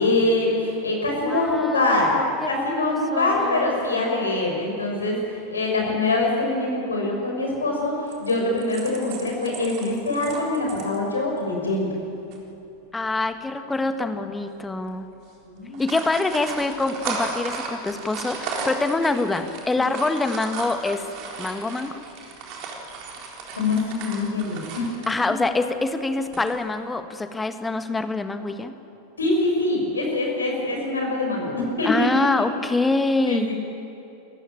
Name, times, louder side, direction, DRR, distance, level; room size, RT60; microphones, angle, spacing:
voice 1, 0.0-7.9 8.2-11.9 15.4-15.8 23.5-24.9 25.3-25.4 29.2-32.1 33.3-33.5, left 2 dB, 75° left, 0 dB, 5.9 m, -24 dB
voice 2, 1.2-3.7 12.9-15.0 15.8-21.1 21.4-22.0 25.1-28.7 31.8-33.5, left 3 dB, 10° left, 8 dB, 1.5 m, -25 dB
sound 1, 8.1-11.0 11.4-11.5 11.8-12.0 12.3-12.4 13.4-13.7 14.3-14.5 14.7-14.9 15.6-25.2 26.2-26.7, right 4 dB, 40° right, 3.9 m, -35 dB
28.5 x 14.5 x 9.1 m, 2.9 s
figure-of-eight pair, 90°, 0 cm